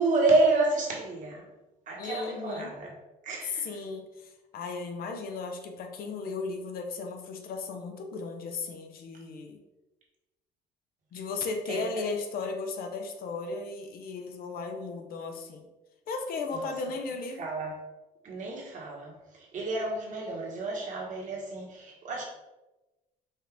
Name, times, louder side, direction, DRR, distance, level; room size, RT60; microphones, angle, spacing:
voice 1, 0.0-1.5 1.9-2.9 3.2-3.7 11.7-11.9 16.5-16.7 17.4-17.8 18.2-22.2, right 3 dB, 50° right, -2 dB, 1.4 m, -29 dB
voice 2, 2.0-2.7 3.4-9.6 11.1-15.7 16.1-17.4, left 4 dB, 60° left, 4 dB, 0.7 m, -36 dB
5.3 x 2.6 x 3.4 m, 1.1 s
cardioid pair, 110°, 17 cm